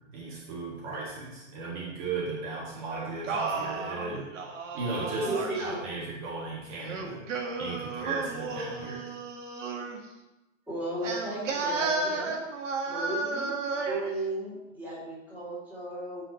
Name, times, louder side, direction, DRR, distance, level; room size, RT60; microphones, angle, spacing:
voice 1, 0.1-4.3 4.7-7.3 7.6-9.0, right 3 dB, 40° right, -5 dB, 2.4 m, -36 dB
Singing, 2.9-5.7 6.8-10.0 11.0-14.1, right 3 dB, 85° right, 2.0 m, -33 dB
voice 2, 5.1-6.0 10.7-12.3 12.9-16.2, right 1 dB, 5° right, -8 dB, 3.5 m, -35 dB
15.0 x 5.8 x 3.2 m, 1.0 s
hypercardioid pair, 160°, 37 cm